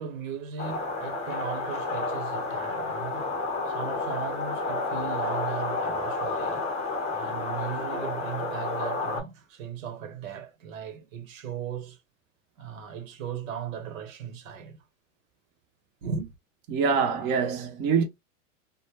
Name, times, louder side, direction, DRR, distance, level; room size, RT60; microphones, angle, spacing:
voice 1, 0.0-6.7 7.1-12.0 12.6-14.8 16.0-16.3, right 8 dB, 80° right, 1.0 m, -37 dB
sound 1, 0.6-9.2, left 3 dB, 15° left, 0.6 m, -30 dB
voice 2, 16.7-18.0, right 6 dB, 25° right, 0.5 m, -24 dB
2.1 x 2.1 x 3.1 m
supercardioid pair, 135°, 40 cm